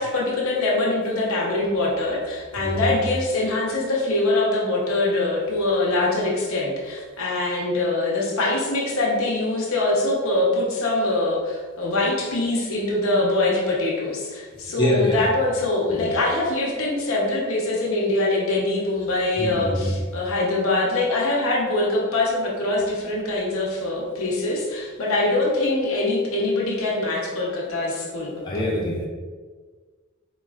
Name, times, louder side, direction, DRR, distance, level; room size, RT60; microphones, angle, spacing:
voice 1, 0.0-28.6, left 2 dB, 80° left, -3 dB, 0.9 m, -23 dB
voice 2, 2.6-2.9 14.8-15.3 15.9-16.1 19.4-20.0 28.4-29.1, left 1 dB, 20° left, -4 dB, 0.5 m, -25 dB
4.0 x 3.0 x 2.4 m, 1.5 s
head